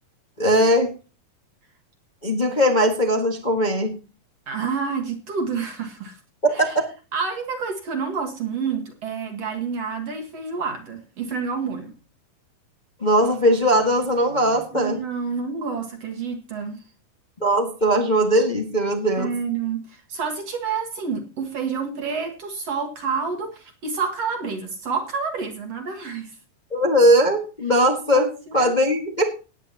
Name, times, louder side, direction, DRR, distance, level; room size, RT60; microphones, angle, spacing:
voice 1, 0.4-0.9 2.2-3.9 6.6-6.9 13.0-15.0 17.4-19.3 26.7-28.3 28.5-29.2, equal, 30° left, 2 dB, 0.8 m, -19 dB
voice 2, 4.5-6.2 6.5-6.8 7.1-11.9 14.7-16.8 19.2-26.4 28.1-28.3 28.5-28.7, right 5 dB, 50° right, 4 dB, 2.4 m, -28 dB
18.5 x 9.3 x 2.9 m, 0.34 s
omnidirectional pair, 4.1 m